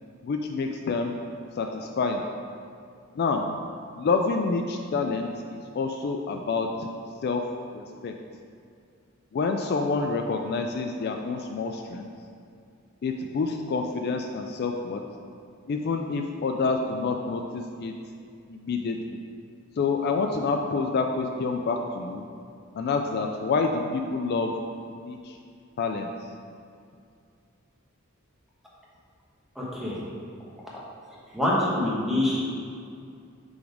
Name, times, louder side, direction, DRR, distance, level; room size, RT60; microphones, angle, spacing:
voice 1, 0.2-1.1 1.6-2.2 3.1-3.5 4.0-6.9 7.2-7.4 7.7-8.1 9.3-12.1 13.0-15.0 15.7-17.9 18.5-19.2 19.8-22.2 22.7-24.5 24.9-25.4 25.8-26.1, left 4 dB, 50° left, 4 dB, 0.3 m, -28 dB
voice 2, 29.6-30.0 31.3-32.4, left 1 dB, ahead, -7 dB, 1.2 m, -25 dB
5.8 x 4.0 x 5.0 m, 2.4 s
head